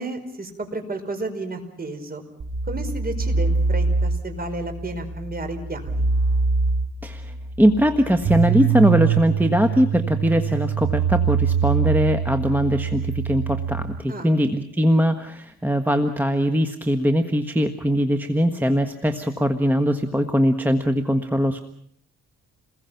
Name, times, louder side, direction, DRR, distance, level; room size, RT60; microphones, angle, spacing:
voice 1, 0.0-2.2 2.7-6.1 14.1-14.3, right 2 dB, 30° right, 7 dB, 5.1 m, -32 dB
sound 1, 2.4-13.8, right 5 dB, 60° right, 6.5 m, -24 dB
voice 2, 7.0-21.6, equal, 5° right, 7 dB, 1.5 m, -21 dB
29.0 x 21.5 x 5.9 m, 0.65 s
cardioid pair, 90°, 30 cm